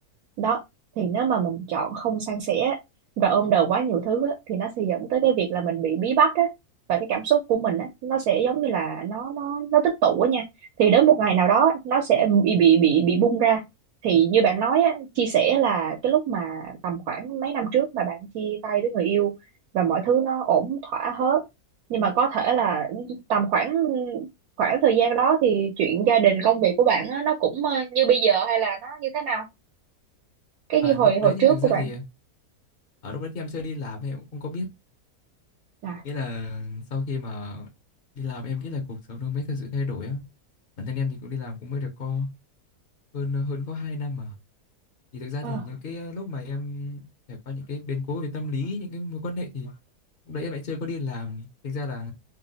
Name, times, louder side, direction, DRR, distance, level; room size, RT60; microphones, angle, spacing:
voice 1, 1.0-2.8 3.2-6.5 6.9-10.4 10.8-13.6 14.0-19.3 19.7-21.4 21.9-24.3 24.6-29.5 30.7-31.9 35.8-36.0 45.4-45.6, right 8 dB, 75° right, 1.2 m, -22 dB
voice 2, 30.8-32.0 33.0-34.7 36.0-37.7 38.2-40.2 40.8-42.3 43.1-44.4 45.1-47.0 47.3-49.7 50.3-52.1, left 3 dB, 50° left, 0.7 m, -31 dB
2.9 x 2.0 x 3.8 m
omnidirectional pair, 1.6 m